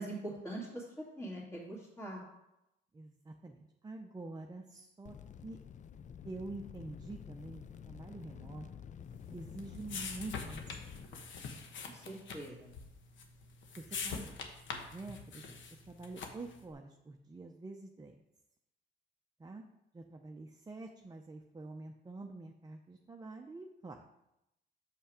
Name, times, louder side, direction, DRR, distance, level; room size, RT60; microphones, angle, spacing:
voice 1, 0.0-2.2 11.8-12.7, right 1 dB, 15° left, -9 dB, 2.3 m, -43 dB
voice 2, 2.9-5.1 5.4-5.6 6.2-8.7 9.3-11.2 13.8-14.4 14.9-15.5 15.9-18.1 19.4-19.6 19.9-24.0, right 3 dB, 20° right, 2 dB, 0.6 m, -47 dB
sound 1, 5.0-11.0, left 8 dB, 40° left, 0.4 m, -49 dB
sound 2, 9.1-16.6, left 5 dB, 70° left, 1.0 m, -44 dB
6.7 x 5.5 x 4.9 m, 0.87 s
cardioid pair, 90°, 20 cm